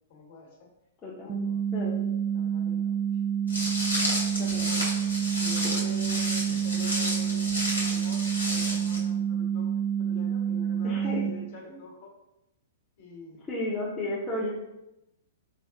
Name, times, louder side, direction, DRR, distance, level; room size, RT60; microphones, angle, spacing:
voice 1, 0.1-0.7 1.2-1.6 2.2-3.0 4.5-4.9 5.4-12.1 13.0-13.4, left 3 dB, 55° left, -2 dB, 1.0 m, -46 dB
voice 2, 1.0-1.4 1.7-2.1 4.4-4.7 5.6-5.8 10.8-11.2 13.5-14.5, left 1 dB, 25° left, -5 dB, 0.6 m, -33 dB
sound 1, 1.3-11.3, right 8 dB, 35° right, 0.4 m, -28 dB
Walk footsteps, 3.5-9.0, left 1 dB, 85° left, 0.8 m, -31 dB
4.2 x 2.4 x 2.4 m, 0.90 s
figure-of-eight pair, 105°, 0 cm